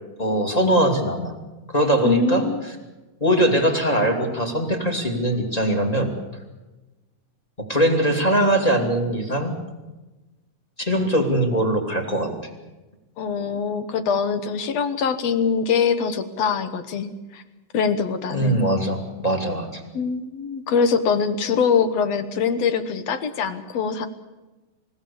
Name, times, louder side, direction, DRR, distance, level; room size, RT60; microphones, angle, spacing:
voice 1, 0.2-1.3 1.7-2.5 3.2-6.1 7.7-9.5 10.8-12.3 18.3-19.8, right 1 dB, 15° left, 4 dB, 2.3 m, -21 dB
voice 2, 2.0-2.6 13.2-17.4 17.7-18.6 19.9-24.1, left 6 dB, 65° left, 11 dB, 2.1 m, -23 dB
29.5 x 16.5 x 7.2 m, 1.1 s
omnidirectional pair, 3.6 m